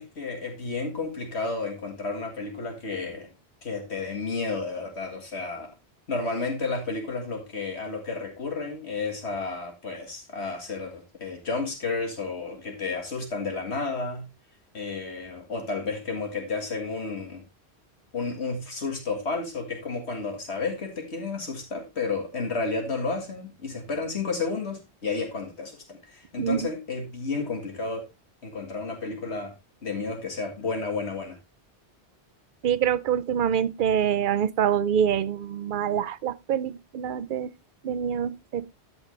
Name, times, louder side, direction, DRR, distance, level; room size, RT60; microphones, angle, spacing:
voice 1, 0.0-3.3 3.6-5.7 6.1-14.2 14.7-17.4 18.1-28.1 28.4-29.5 29.8-31.4, left 4 dB, 80° left, 2.1 m, -31 dB
voice 2, 26.4-26.7 32.6-37.5 37.8-38.7, right 8 dB, 55° right, 0.7 m, -25 dB
13.0 x 5.3 x 3.2 m
omnidirectional pair, 1.1 m